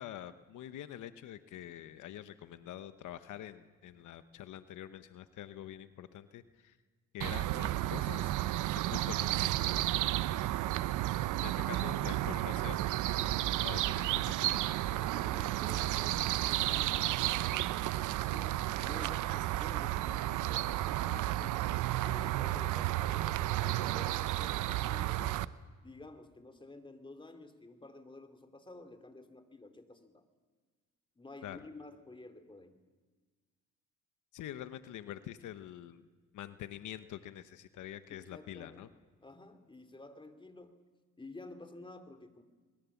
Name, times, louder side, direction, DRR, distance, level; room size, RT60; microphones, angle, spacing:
voice 1, 0.0-6.8 7.1-8.3 8.7-9.6 11.3-12.8 13.6-14.6 31.4-31.6 34.3-36.1 36.3-38.9, left 12 dB, 80° left, 12 dB, 1.1 m, -46 dB
sound 1, 7.2-25.5, right 15 dB, 90° right, 0.7 m, -32 dB
voice 2, 10.0-10.6 11.5-12.2 14.9-21.7 22.0-25.5 25.8-30.2 31.2-32.8 38.1-38.9 39.2-40.8 41.2-42.4, left 2 dB, 15° left, 8 dB, 2.8 m, -52 dB
27.0 x 21.5 x 7.2 m, 1.4 s
cardioid pair, 90°, 30 cm